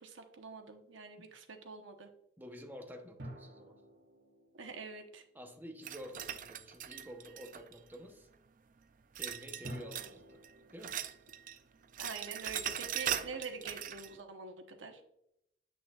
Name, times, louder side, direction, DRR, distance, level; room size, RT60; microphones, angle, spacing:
voice 1, 0.0-2.1 4.5-5.2 12.0-15.0, right 4 dB, 90° right, 1.0 m, -45 dB
voice 2, 2.4-3.8 5.3-8.3 9.2-10.4 10.7-11.0, equal, 10° right, 0.8 m, -49 dB
sound 1, 3.2-6.0 9.6-13.0, right 1 dB, 60° right, 1.6 m, -52 dB
sound 2, 5.8-8.0 9.2-10.2 10.4-11.6 11.8-14.1, right 10 dB, 45° right, 0.4 m, -40 dB
8.5 x 6.1 x 2.4 m
head